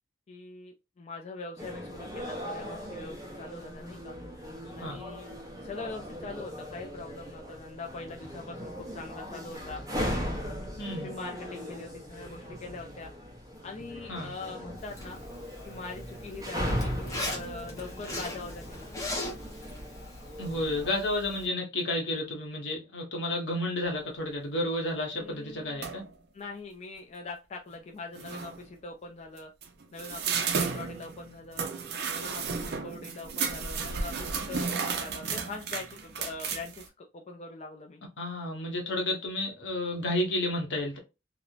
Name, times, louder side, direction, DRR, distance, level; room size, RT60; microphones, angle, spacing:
voice 1, 0.3-4.1 4.8-5.3 5.6-9.8 11.0-13.1 13.6-15.2 15.6-18.9 25.1-25.8 26.3-29.5 29.9-31.7 32.1-38.0, left 3 dB, 35° left, 0.3 m, -42 dB
sound 1, 1.6-20.9, equal, 20° right, 0.7 m, -38 dB
voice 2, 10.8-11.1 14.1-14.3 20.4-26.0 38.2-41.0, left 1 dB, 75° left, 0.9 m, -31 dB
Zipper (clothing), 14.8-21.5, left 1 dB, 20° left, 0.7 m, -40 dB
sound 2, 25.8-26.1 27.8-27.9 28.1-28.6 29.4-36.9, right 5 dB, 60° right, 0.5 m, -33 dB
3.0 x 2.0 x 2.4 m
head